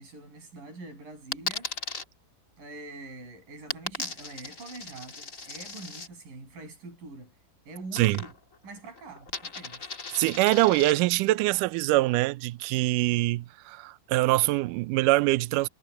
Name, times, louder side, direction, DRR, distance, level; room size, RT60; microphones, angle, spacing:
voice 1, 0.0-1.7 2.6-7.4 7.7-8.4 8.6-9.8, right 2 dB, 60° right, 9.0 m, -44 dB
Coin (dropping), 1.3-2.0 3.7-6.1 7.9-8.6 8.9-10.9, left 4 dB, 30° left, 1.7 m, -37 dB
voice 2, 10.1-15.7, right 19 dB, 85° right, 1.9 m, -24 dB
omnidirectional pair, 4.4 m